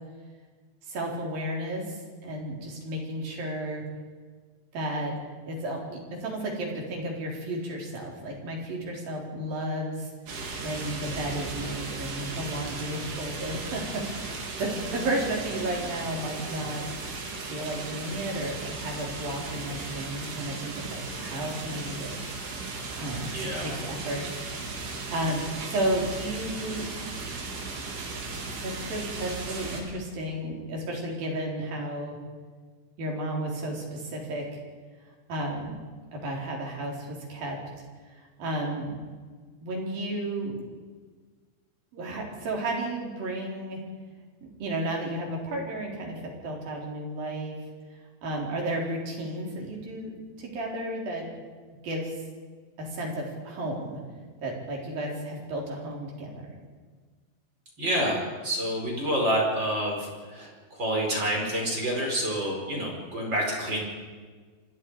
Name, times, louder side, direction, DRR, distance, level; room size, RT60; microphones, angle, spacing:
voice 1, 0.8-3.8 4.7-5.2 5.5-10.1 10.6-16.9 17.5-22.2 22.7-24.3 24.8-26.9 28.6-32.2 33.0-34.5 35.3-35.8 36.1-37.6 38.2-39.0 39.6-40.6 41.9-43.8 44.6-47.5 48.2-50.1 50.4-51.3 51.8-52.1 52.8-54.0 54.4-56.6, right 1 dB, 50° right, -1 dB, 5.8 m, -33 dB
sound 1, 10.3-29.8, right 3 dB, 80° right, 6.0 m, -36 dB
voice 2, 23.3-23.7 57.8-63.8, equal, 25° right, -1 dB, 5.2 m, -28 dB
28.5 x 24.5 x 4.9 m, 1.5 s
omnidirectional pair, 5.4 m